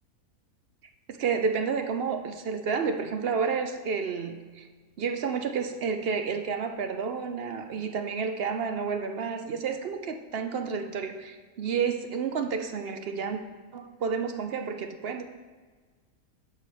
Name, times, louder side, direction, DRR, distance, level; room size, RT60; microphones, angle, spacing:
voice 1, 1.1-4.7 5.0-13.4 13.7-15.2, right 5 dB, 60° right, 6 dB, 0.6 m, -30 dB
7.1 x 4.8 x 7.0 m, 1.4 s
omnidirectional pair, 1.5 m